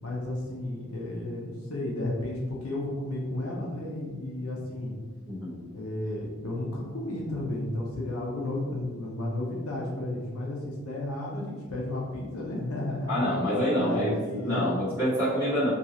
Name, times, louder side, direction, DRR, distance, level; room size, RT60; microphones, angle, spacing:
voice 1, 0.0-4.9 5.7-13.4 13.8-14.8, left 1 dB, 70° left, -2 dB, 0.6 m, -33 dB
voice 2, 13.1-15.7, equal, 10° right, -11 dB, 1.2 m, -26 dB
2.6 x 2.3 x 2.8 m, 1.4 s
head